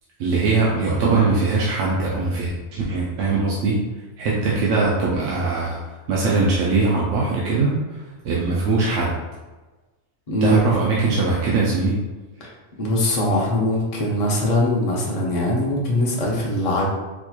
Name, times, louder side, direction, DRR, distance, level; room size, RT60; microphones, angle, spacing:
voice 1, 0.2-3.8 4.2-5.8 6.1-7.8 8.2-9.1 10.4-12.0, right 3 dB, 80° right, -5 dB, 1.0 m, -21 dB
voice 2, 10.3-10.6 12.8-16.9, left 1 dB, 35° left, -3 dB, 0.7 m, -21 dB
4.4 x 2.9 x 2.3 m, 1.2 s
omnidirectional pair, 1.3 m